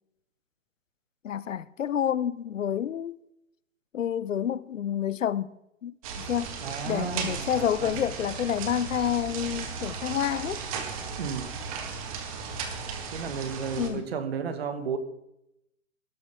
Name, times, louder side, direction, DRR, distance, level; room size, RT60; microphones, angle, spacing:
voice 1, 1.2-3.2 3.9-5.5 5.8-5.9 6.2-6.6 6.8-10.6 13.8-14.1, left 9 dB, 70° left, 0.8 m, -29 dB
sound 1, 6.0-13.9, right 5 dB, 25° right, 1.8 m, -36 dB
voice 2, 6.6-8.0 11.2-11.6 13.1-15.0, right 6 dB, 50° right, 1.9 m, -33 dB
18.5 x 13.0 x 3.6 m
hypercardioid pair, 165°, 40 cm